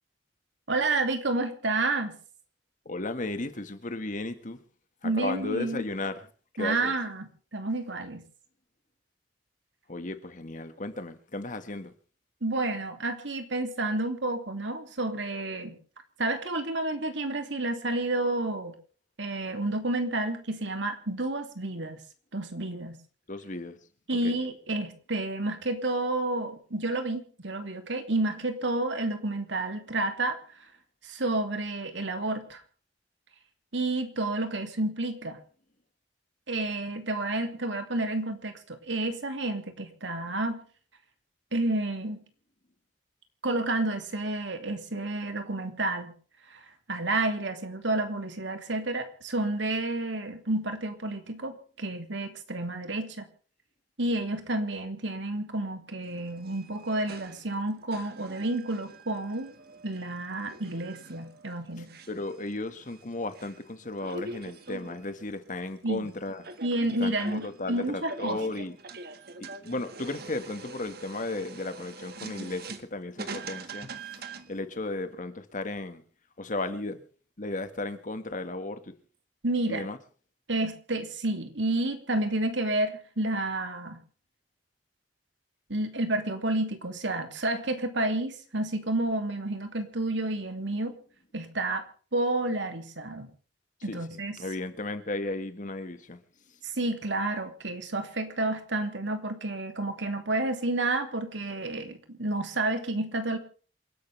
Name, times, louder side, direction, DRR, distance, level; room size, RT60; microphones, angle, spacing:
voice 1, 0.7-2.2 5.0-5.8 6.6-8.2 12.4-15.8 16.2-18.7 19.2-22.0 22.3-23.0 24.1-30.4 31.0-32.6 33.7-35.4 36.5-40.6 41.5-42.2 43.4-46.1 46.5-46.6 46.9-53.3 54.0-59.5 59.8-61.9 65.8-66.1 66.6-68.4 79.4-79.9 80.5-84.0 85.7-91.0 91.3-91.8 92.1-93.3 93.8-94.4 96.6-103.4, right 2 dB, 85° right, 2.7 m, -30 dB
voice 2, 2.9-4.6 5.0-6.3 6.6-6.9 9.9-11.9 23.3-23.8 24.1-24.4 62.1-66.4 67.0-68.8 69.4-73.9 74.5-76.0 76.4-77.0 77.4-79.0 79.7-80.0 93.9-94.1 94.4-96.2, left 2 dB, 45° left, 1.8 m, -35 dB
sound 1, 56.0-74.6, right 3 dB, 60° right, 1.7 m, -44 dB
28.0 x 11.5 x 3.4 m
head